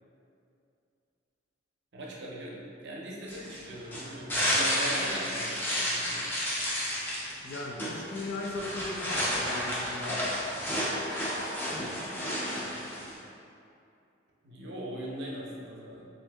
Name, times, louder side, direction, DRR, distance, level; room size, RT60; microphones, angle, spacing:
voice 1, 1.9-6.3 14.4-16.1, right 1 dB, 65° right, -4 dB, 0.6 m, -40 dB
sound 1, 3.3-13.2, equal, 10° left, 0.4 m, -31 dB
voice 2, 7.4-10.4 12.6-12.9, left 2 dB, 90° left, 0 dB, 0.4 m, -38 dB
2.7 x 2.6 x 3.3 m, 2.6 s
head